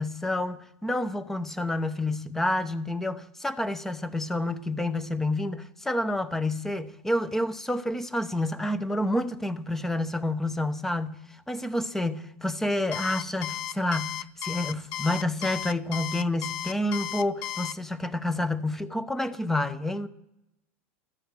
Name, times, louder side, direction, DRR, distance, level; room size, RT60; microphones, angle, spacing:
voice 1, 0.0-11.2 11.5-20.1, left 1 dB, 5° left, 0.8 m, -29 dB
Alarm, 12.9-17.7, left 13 dB, 55° left, 0.6 m, -34 dB
14.0 x 11.5 x 7.6 m
supercardioid pair, 130°, 7 cm